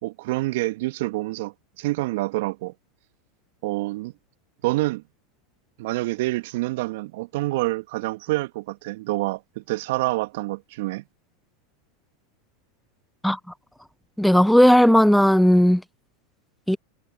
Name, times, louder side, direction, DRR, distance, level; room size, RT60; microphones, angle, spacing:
voice 1, 0.0-2.7 3.6-4.1 4.6-5.0 5.8-11.0, right 20 dB, 60° right, 1.6 m, -27 dB
voice 2, 14.2-15.8 16.7-16.8, equal, ahead, 0.7 m, -16 dB
figure-of-eight pair, 85°, 0 cm